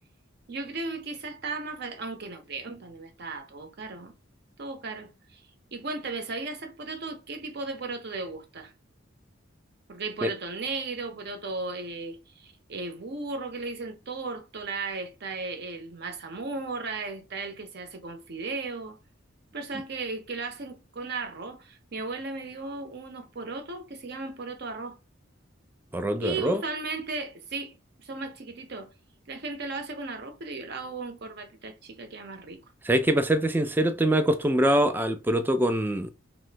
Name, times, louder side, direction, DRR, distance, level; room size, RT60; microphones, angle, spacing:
voice 1, 0.5-4.1 4.6-5.4 5.7-8.7 9.9-19.0 19.5-25.0 26.2-27.7 28.0-28.9 29.3-32.6, right 3 dB, 55° right, 0.7 m, -36 dB
voice 2, 25.9-26.6 32.8-36.1, right 1 dB, 10° right, 0.3 m, -24 dB
3.0 x 2.0 x 3.2 m
head